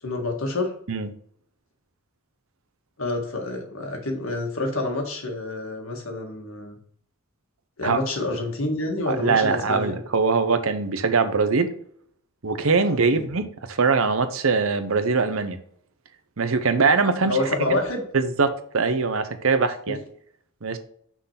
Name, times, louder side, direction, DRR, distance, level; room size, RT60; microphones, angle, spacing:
voice 1, 0.0-0.7 3.0-6.8 7.8-10.0 12.9-13.2 17.2-18.0 19.9-20.0, left 2 dB, 65° left, 1.7 m, -28 dB
voice 2, 9.1-11.7 12.4-15.6 16.4-17.4 17.7-17.8 18.1-20.0 20.6-20.8, right 4 dB, 65° right, 0.8 m, -22 dB
6.1 x 4.0 x 5.7 m
head